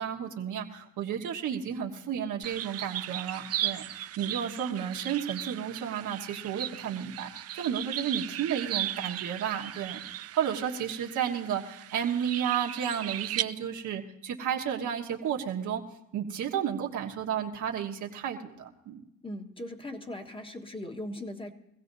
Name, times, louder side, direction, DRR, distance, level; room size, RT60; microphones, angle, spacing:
voice 1, 0.0-15.8 16.1-19.1, right 8 dB, 75° right, 1 dB, 1.5 m, -32 dB
sound 1, 2.4-13.4, right 12 dB, 55° right, 0.4 m, -37 dB
voice 2, 19.2-21.5, left 1 dB, 15° left, 4 dB, 1.3 m, -39 dB
23.5 x 16.0 x 2.7 m, 0.85 s
cardioid pair, 90°, 30 cm